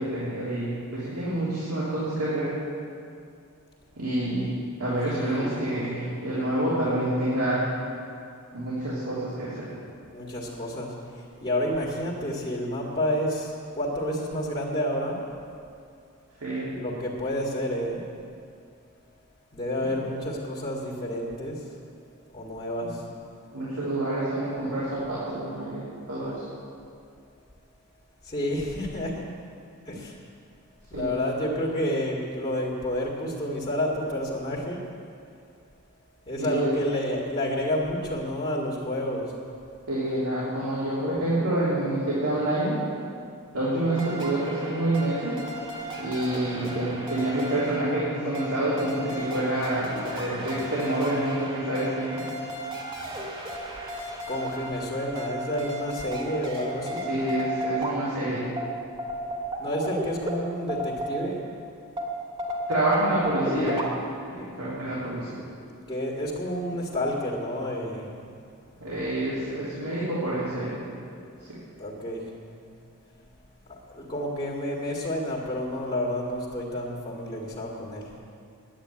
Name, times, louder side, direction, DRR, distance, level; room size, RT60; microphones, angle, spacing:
voice 1, 0.0-2.5 4.0-4.5 4.8-7.7 8.5-9.7 16.4-16.7 19.8-19.9 23.5-26.4 30.9-31.1 36.5-36.7 39.9-42.8 43.5-45.4 46.0-52.2 57.1-58.5 62.7-63.8 64.3-65.4 68.8-70.8 71.5-71.6, right 1 dB, 80° right, -10 dB, 3.5 m, -27 dB
voice 2, 5.0-5.7 10.1-15.2 16.7-18.0 19.5-21.6 22.3-23.0 28.2-29.3 29.9-30.2 30.9-34.8 36.3-39.3 54.3-57.1 59.6-61.4 65.9-68.1 69.7-69.9 71.8-72.2 73.7-78.1, equal, 25° left, -5 dB, 1.9 m, -30 dB
sound 1, 43.9-61.5 62.0-63.8, right 1 dB, 25° right, 2.0 m, -34 dB
10.5 x 9.0 x 9.7 m, 2.4 s
head